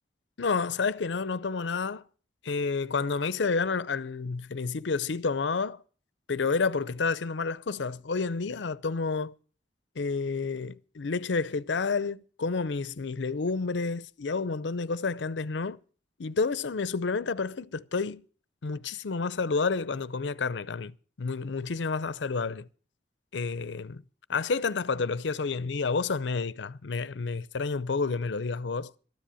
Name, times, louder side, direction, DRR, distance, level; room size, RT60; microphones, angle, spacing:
voice 1, 0.4-2.0 2.4-5.8 6.3-9.3 10.0-15.8 16.2-18.2 18.6-22.7 23.3-24.0 24.3-28.9, left 4 dB, 80° left, 0.6 m, -30 dB
13.0 x 10.5 x 6.3 m
head